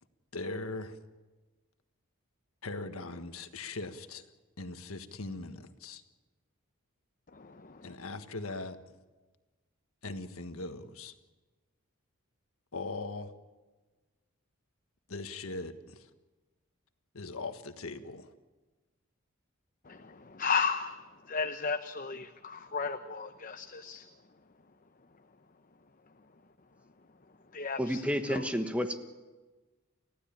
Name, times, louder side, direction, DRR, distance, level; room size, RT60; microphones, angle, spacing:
voice 1, 0.3-1.0 2.6-4.2 4.6-6.0 7.8-8.8 10.0-11.1 12.7-13.3 15.1-16.1 17.1-18.3, left 3 dB, 85° left, 9 dB, 1.5 m, -40 dB
voice 2, 7.3-7.9 19.8-21.0 21.2-24.1 27.5-28.0 28.3-28.5, left 5 dB, 40° left, 8 dB, 0.8 m, -34 dB
voice 3, 27.8-29.0, equal, 5° right, 7 dB, 1.4 m, -30 dB
30.0 x 15.5 x 8.9 m, 1.3 s
head